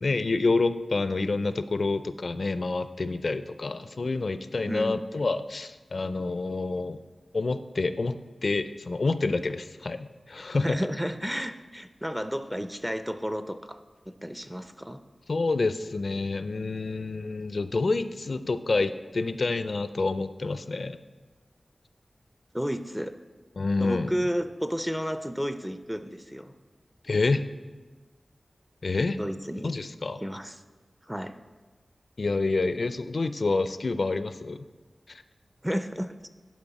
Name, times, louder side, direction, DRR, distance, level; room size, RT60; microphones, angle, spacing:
voice 1, 0.0-7.0 7.3-10.8 15.3-21.0 23.6-24.1 27.0-27.5 28.8-29.2 29.6-30.2 32.2-34.6 35.1-35.2, left 3 dB, 60° left, 12 dB, 0.4 m, -28 dB
voice 2, 4.7-5.0 10.6-13.8 14.1-15.0 22.5-23.1 23.8-26.5 29.2-29.7 30.2-30.6 31.1-31.3 35.6-36.3, equal, 5° right, 9 dB, 0.4 m, -32 dB
10.5 x 5.3 x 4.1 m, 1.3 s
wide cardioid pair, 80°, 0 cm